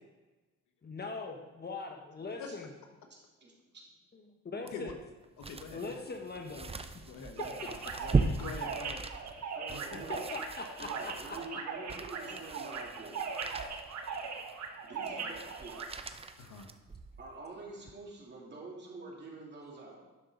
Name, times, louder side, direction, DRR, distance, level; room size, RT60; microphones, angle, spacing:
voice 1, 0.8-2.7 4.1-4.9 5.7-6.6 7.4-7.5 10.1-11.6 12.3-12.4, left 3 dB, 35° left, 3 dB, 1.2 m, -41 dB
sound 1, 4.7-17.3 17.8-17.9, right 4 dB, 20° right, 0.6 m, -38 dB
voice 2, 5.4-6.0 6.5-9.0 9.4-10.0 16.4-16.7, left 4 dB, 75° left, 4 dB, 1.3 m, -46 dB
sound 2, 7.4-15.9, right 5 dB, 65° right, 1.4 m, -40 dB
voice 3, 9.5-10.2 10.8-13.2 14.8-16.0 17.2-20.0, right 3 dB, 35° right, -3 dB, 2.9 m, -47 dB
11.0 x 6.5 x 3.9 m, 1.2 s
cardioid pair, 90°, 30 cm